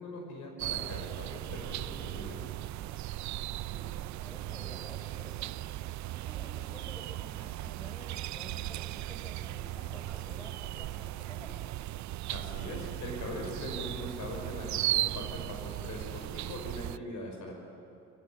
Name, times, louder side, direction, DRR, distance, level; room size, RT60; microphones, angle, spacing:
voice 1, 0.0-2.4 12.3-17.5, left 1 dB, 80° left, 1 dB, 5.6 m, -41 dB
sound 1, 0.6-17.0, right 15 dB, 70° right, 0.5 m, -37 dB
voice 2, 3.7-11.5, equal, 10° left, 2 dB, 5.0 m, -51 dB
25.0 x 16.5 x 8.8 m, 2.8 s
cardioid pair, 90°, 30 cm